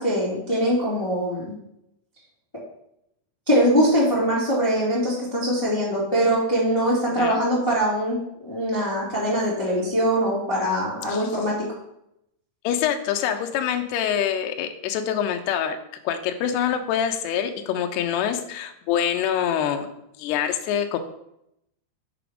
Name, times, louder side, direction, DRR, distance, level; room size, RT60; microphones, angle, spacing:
voice 1, 0.0-1.5 3.5-11.5, equal, 10° left, -7 dB, 1.3 m, -22 dB
voice 2, 12.6-15.8 16.0-19.9 20.2-21.0, left 9 dB, 85° left, 5 dB, 2.4 m, -25 dB
6.8 x 5.0 x 5.1 m, 0.78 s
omnidirectional pair, 5.5 m